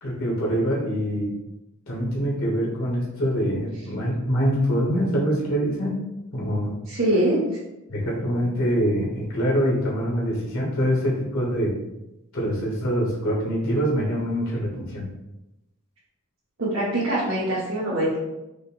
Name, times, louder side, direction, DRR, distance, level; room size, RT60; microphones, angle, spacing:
voice 1, 0.0-1.3 1.9-6.0 6.3-6.8 7.9-11.7 12.3-15.1, equal, 70° left, -5 dB, 1.4 m, -24 dB
voice 2, 6.9-7.6 16.6-18.2, right 1 dB, 65° right, -9 dB, 1.3 m, -23 dB
5.1 x 2.2 x 4.2 m, 0.94 s
head